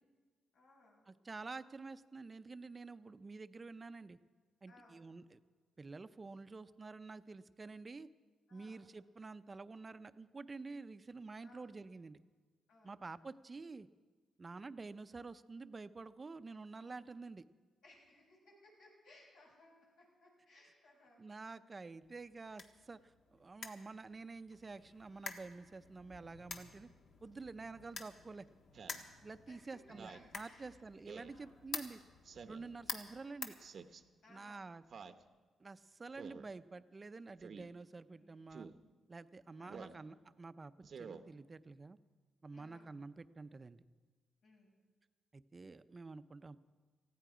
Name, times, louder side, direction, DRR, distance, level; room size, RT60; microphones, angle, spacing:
voice 1, 0.5-1.1 4.7-5.1 8.5-8.9 11.4-11.7 12.7-13.0 17.8-21.2 27.7-27.8 29.5-29.6 29.9-30.7 31.2-31.6 32.5-33.0 34.2-34.7 38.1-38.5 39.6-40.0 42.5-42.9 44.4-44.7, left 2 dB, 85° left, -3 dB, 6.8 m, -64 dB
voice 2, 1.1-4.2 4.6-5.4 5.8-8.1 8.5-12.2 12.8-13.9 14.4-17.4 21.2-26.9 27.2-28.5 29.2-32.0 32.5-33.5 34.3-34.8 35.6-38.7 39.1-42.0 42.4-43.8 45.3-46.6, right 3 dB, 30° right, 13 dB, 0.6 m, -49 dB
sound 1, 22.0-34.3, left 5 dB, 65° left, 1.5 m, -50 dB
Speech synthesizer, 28.7-29.0 29.9-30.3 31.1-31.4 32.2-32.7 33.6-34.0 34.9-35.2 36.2-36.5 37.4-37.7 38.5-38.8 39.7-40.0 40.8-41.2, right 5 dB, 55° right, 0.8 m, -50 dB
18.5 x 15.5 x 5.0 m, 1.4 s
cardioid pair, 95°, 0 cm